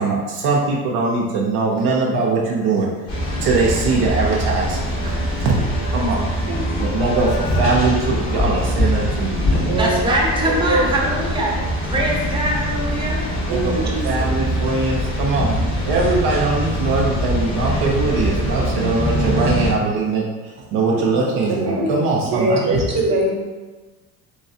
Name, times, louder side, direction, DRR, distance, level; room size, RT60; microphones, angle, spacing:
voice 1, 0.0-2.9 3.4-5.6 5.9-6.2 6.8-9.7 13.5-15.5 15.8-22.8, right 3 dB, 65° right, -2 dB, 0.7 m, -21 dB
sound 1, 3.1-19.7, equal, 40° left, 1.2 m, -23 dB
voice 2, 6.5-7.0 9.6-10.8 13.5-14.3 20.9-23.3, right 2 dB, 35° right, -1 dB, 1.0 m, -23 dB
voice 3, 9.8-11.5 11.8-13.2, right 1 dB, 10° right, -2 dB, 0.8 m, -22 dB
3.1 x 3.1 x 2.7 m, 1.3 s
hypercardioid pair, 55°, 44 cm